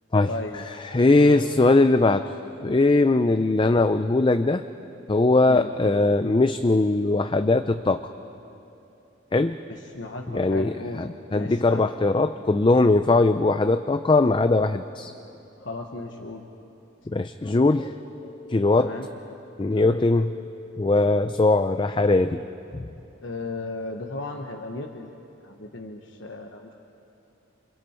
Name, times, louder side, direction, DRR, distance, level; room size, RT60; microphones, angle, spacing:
voice 1, 0.3-0.6 1.2-1.7 5.5-5.7 9.7-11.0 11.3-11.9 15.6-16.4 18.8-19.1 19.7-20.1 23.2-25.1 25.4-26.7, left 2 dB, 60° left, 3 dB, 1.2 m, -35 dB
voice 2, 0.8-2.3 2.6-4.6 5.1-8.1 9.3-9.6 10.3-15.1 17.1-19.0 19.6-22.4 22.7-22.8, left 2 dB, 25° left, 9 dB, 0.4 m, -21 dB
28.5 x 27.0 x 4.4 m, 2.8 s
head